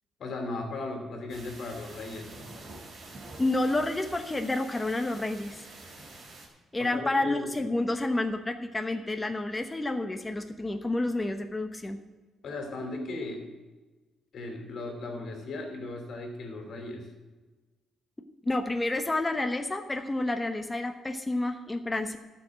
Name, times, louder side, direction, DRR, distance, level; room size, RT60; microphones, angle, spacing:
voice 1, 0.2-2.5 6.8-7.6 12.4-13.5 14.3-17.1, left 2 dB, 60° left, 3 dB, 2.7 m, -37 dB
sound 1, 1.3-6.5, right 2 dB, 50° right, 3.4 m, -47 dB
voice 2, 3.4-5.6 6.7-12.0 18.5-22.2, left 2 dB, 15° left, 6 dB, 0.9 m, -29 dB
12.0 x 6.3 x 7.7 m, 1.3 s
cardioid pair, 90°, 0 cm